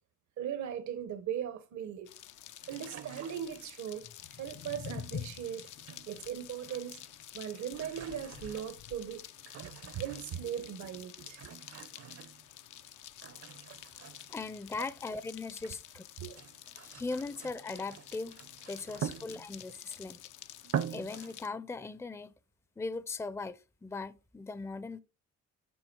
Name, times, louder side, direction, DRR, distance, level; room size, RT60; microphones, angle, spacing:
voice 1, 0.4-2.1 2.7-5.7 6.1-7.0 7.3-9.3 9.6-11.5 16.2-16.4, right 9 dB, 70° right, 1.0 m, -39 dB
sound 1, 2.1-21.5, left 12 dB, 80° left, 0.7 m, -51 dB
sound 2, 2.6-3.9 4.8-6.3 6.6-7.2 7.5-10.6 11.2-12.8 13.2-15.8 16.2-19.8 20.2-20.3 20.6-21.4, right 8 dB, 55° right, 0.7 m, -44 dB
sound 3, 4.0-10.1, left 7 dB, 50° left, 0.8 m, -47 dB
voice 2, 14.3-16.0 16.8-18.4 18.7-20.2 20.9-22.3 22.8-25.0, left 3 dB, 10° left, 0.5 m, -39 dB
7.7 x 6.0 x 4.5 m
cardioid pair, 90°, 30 cm